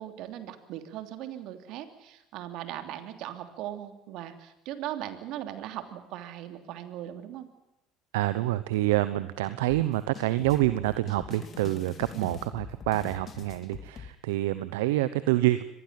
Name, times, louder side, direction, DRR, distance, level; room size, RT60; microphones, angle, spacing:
voice 1, 0.0-7.5 12.1-12.4, right 12 dB, 65° right, 8 dB, 3.1 m, -39 dB
voice 2, 8.1-15.6, right 16 dB, 80° right, 14 dB, 0.9 m, -27 dB
sound 1, 9.7-14.1, left 6 dB, 45° left, 3.1 m, -44 dB
25.0 x 19.5 x 7.7 m, 0.93 s
hypercardioid pair, 75°, 0 cm